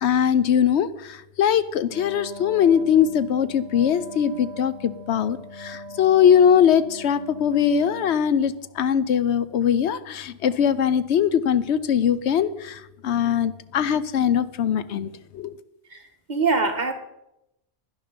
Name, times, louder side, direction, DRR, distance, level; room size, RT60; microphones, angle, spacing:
voice 1, 0.0-15.5, left 8 dB, 80° left, 15 dB, 0.9 m, -21 dB
Wind instrument woodwind instrument, 1.8-8.3, equal, 70° right, 1.3 m, -41 dB
voice 2, 15.9-16.9, right 4 dB, 40° right, 5 dB, 1.4 m, -24 dB
11.5 x 11.0 x 5.2 m, 0.85 s
omnidirectional pair, 1.1 m